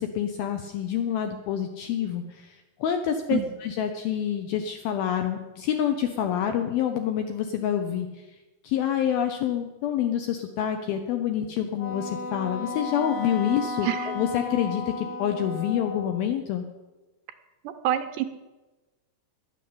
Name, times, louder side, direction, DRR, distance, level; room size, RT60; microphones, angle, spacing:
voice 1, 0.0-8.1 8.6-16.6, left 9 dB, 80° left, 6 dB, 2.2 m, -27 dB
Wind instrument woodwind instrument, 11.8-16.3, left 3 dB, 50° left, 1.6 m, -34 dB
voice 2, 17.6-18.3, right 12 dB, 80° right, 8 dB, 2.6 m, -27 dB
11.5 x 9.6 x 8.5 m, 1.1 s
omnidirectional pair, 5.2 m